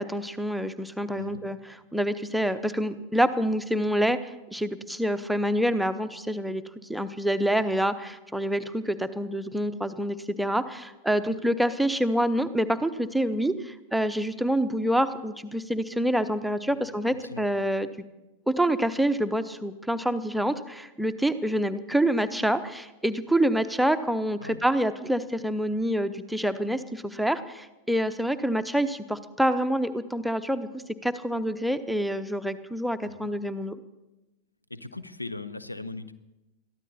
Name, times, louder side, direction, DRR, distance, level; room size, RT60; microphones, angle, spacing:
voice 1, 0.0-1.6 1.9-4.2 4.5-6.6 6.9-17.9 18.5-33.8, equal, ahead, 11 dB, 0.8 m, -27 dB
voice 2, 16.7-17.4 24.4-24.6 33.0-33.3 34.7-36.1, left 2 dB, 85° left, 14 dB, 0.8 m, -39 dB
22.0 x 14.0 x 4.2 m, 1.0 s
figure-of-eight pair, 90°, 0 cm